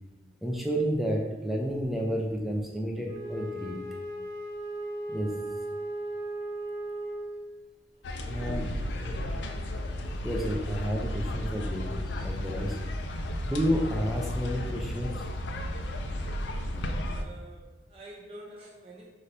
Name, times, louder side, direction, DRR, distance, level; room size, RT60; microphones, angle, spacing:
voice 1, 0.4-3.8 5.1-5.3 8.3-8.7 10.2-12.8 13.4-15.3, equal, ahead, -1 dB, 0.5 m, -30 dB
Wind instrument woodwind instrument, 3.0-7.6, right 1 dB, 80° right, 1.2 m, -36 dB
sound 1, 8.0-17.2, left 1 dB, 80° left, 0.4 m, -33 dB
voice 2, 8.1-8.7 9.0-9.7 17.1-19.1, right 1 dB, 30° right, -5 dB, 0.9 m, -49 dB
5.3 x 2.6 x 3.3 m, 1.1 s
head